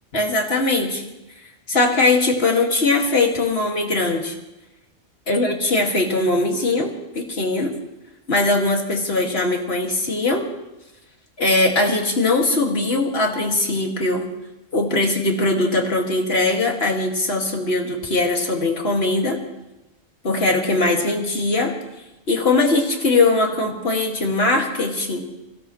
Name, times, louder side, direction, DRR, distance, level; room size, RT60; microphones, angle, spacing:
voice 1, 0.1-1.0 1.7-4.3 5.3-7.7 8.3-10.5 11.4-14.3 14.7-19.4 20.2-21.7 22.3-25.2, left 2 dB, 50° left, 1 dB, 2.5 m, -20 dB
25.5 x 17.0 x 3.2 m, 1.0 s
omnidirectional pair, 1.3 m